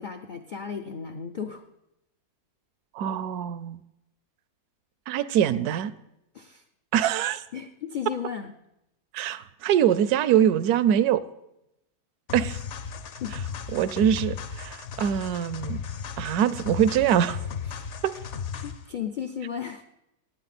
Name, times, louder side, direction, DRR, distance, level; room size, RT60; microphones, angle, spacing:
voice 1, 0.0-1.6 6.3-6.6 7.5-8.5 12.9-13.3 17.7-17.9 18.6-19.8, left 7 dB, 80° left, 6 dB, 0.4 m, -35 dB
voice 2, 2.9-3.8 5.1-5.9 6.9-7.4 9.1-11.2 12.3-12.6 13.7-15.8 16.2-17.4 18.0-18.1, right 10 dB, 75° right, 16 dB, 1.1 m, -23 dB
sound 1, 12.3-18.9, left 6 dB, 55° left, 1.0 m, -35 dB
16.5 x 9.0 x 4.2 m, 0.86 s
omnidirectional pair, 1.7 m